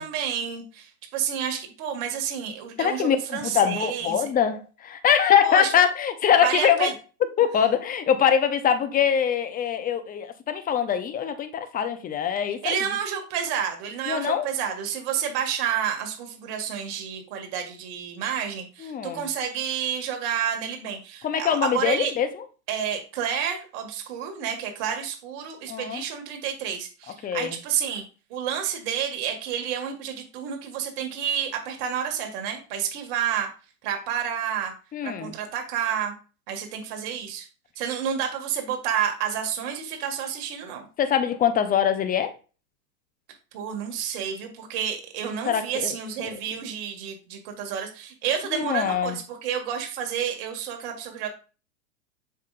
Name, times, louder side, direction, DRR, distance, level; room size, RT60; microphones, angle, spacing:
voice 1, 0.0-4.3 5.4-5.7 6.4-6.9 12.6-22.1 22.7-28.0 28.3-33.5 33.8-34.7 35.0-36.1 36.5-37.5 37.8-40.9 43.5-51.3, right 8 dB, 50° right, 2.0 m, -30 dB
voice 2, 2.8-6.9 7.4-12.9 14.1-14.5 18.8-19.3 21.2-22.4 25.7-26.0 27.2-27.6 34.9-35.3 41.0-42.3 45.5-46.3 48.5-49.2, left 8 dB, 20° left, 0.8 m, -23 dB
7.3 x 5.9 x 2.5 m
hypercardioid pair, 105°, 44 cm